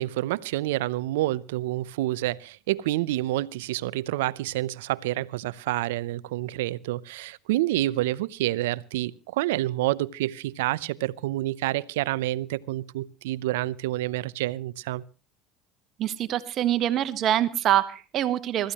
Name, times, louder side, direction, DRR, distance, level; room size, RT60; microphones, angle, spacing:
voice 1, 0.0-15.0, right 16 dB, 80° right, 0.7 m, -28 dB
voice 2, 16.0-18.7, right 12 dB, 50° right, 1.4 m, -25 dB
25.0 x 14.5 x 3.0 m
hypercardioid pair, 80°, 0 cm